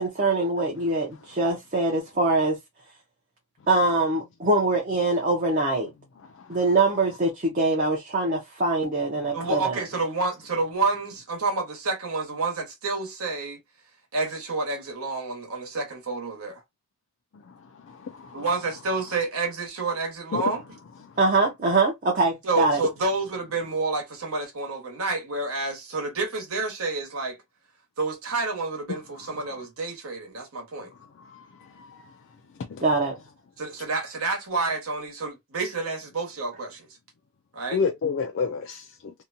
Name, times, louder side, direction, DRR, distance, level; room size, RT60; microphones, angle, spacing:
voice 1, 0.0-2.6 3.7-5.9 6.5-9.8 21.2-22.8 32.8-33.2, right 2 dB, 35° right, 0.6 m, -23 dB
voice 2, 9.3-13.6 14.1-16.6 18.3-20.6 22.4-27.4 28.0-30.9 33.6-36.9 37.5-37.8, right 3 dB, 80° right, 1.2 m, -29 dB
voice 3, 17.9-18.4 20.3-20.4 31.3-31.4 32.7-32.8 37.7-39.1, left 5 dB, 55° left, 0.3 m, -29 dB
2.7 x 2.2 x 2.5 m
head